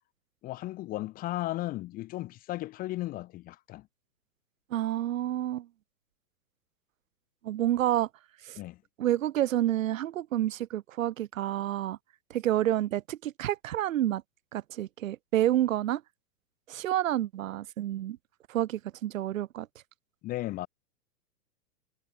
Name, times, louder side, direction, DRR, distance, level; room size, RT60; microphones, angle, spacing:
voice 1, 0.4-3.9 8.6-8.8 20.2-20.7, left 16 dB, 20° left, 1.5 m, -35 dB
voice 2, 4.7-5.7 7.4-8.1 8.4-8.6 9.0-12.0 12.3-14.2 14.5-16.0 16.7-18.2 18.5-19.7, right 13 dB, 55° right, 2.1 m, -29 dB
hypercardioid pair, 160°, 48 cm